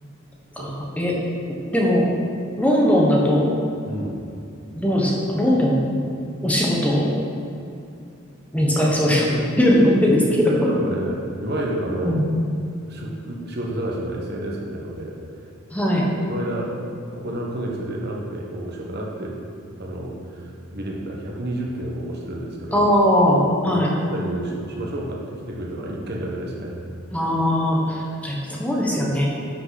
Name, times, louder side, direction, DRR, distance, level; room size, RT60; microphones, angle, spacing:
voice 1, 0.6-1.2 1.7-2.1 2.6-3.6 4.7-6.1 6.4-7.2 8.5-9.3 9.6-10.5 12.0-12.3 15.7-16.1 22.7-23.9 27.1-29.3, equal, 5° left, -3 dB, 1.2 m, -19 dB
voice 2, 3.9-4.2 8.8-9.6 10.4-12.2 12.9-15.2 16.3-16.8 17.1-19.4 19.8-22.9 23.7-26.8, right 1 dB, 55° right, -1 dB, 1.3 m, -30 dB
10.5 x 6.0 x 4.1 m, 2.6 s
head